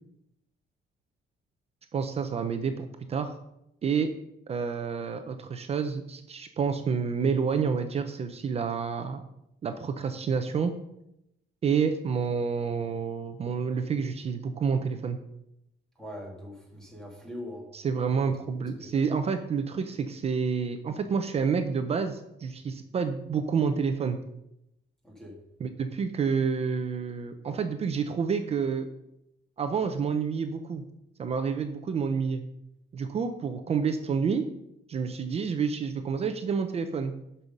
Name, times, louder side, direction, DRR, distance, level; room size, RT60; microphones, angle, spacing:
voice 1, 1.9-3.4 3.8-4.1 4.5-9.2 9.6-10.7 11.6-15.2 17.7-24.2 25.6-28.9 29.6-30.8 31.2-32.4 32.9-34.4 34.9-37.1, right 6 dB, 35° right, 7 dB, 0.6 m, -29 dB
voice 2, 16.0-17.7 18.8-18.9 25.0-25.4, left 1 dB, 5° left, 0 dB, 2.0 m, -42 dB
12.0 x 5.6 x 5.3 m, 0.82 s
cardioid pair, 180°, 19 cm